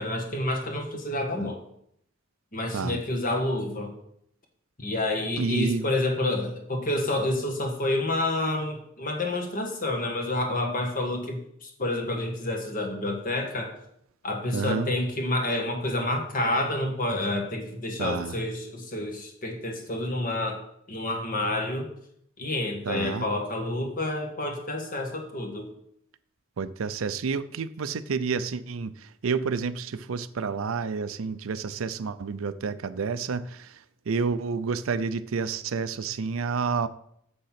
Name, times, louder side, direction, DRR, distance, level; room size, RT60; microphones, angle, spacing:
voice 1, 0.0-1.6 2.5-3.9 4.8-13.7 14.2-20.6 20.9-21.9 22.4-25.7, left 1 dB, 40° left, 1.5 m, -29 dB
voice 2, 5.4-5.9 14.5-14.9 18.0-18.3 22.9-23.3 26.6-33.8 34.1-36.9, right 5 dB, 80° right, 0.5 m, -29 dB
7.2 x 6.6 x 5.8 m
head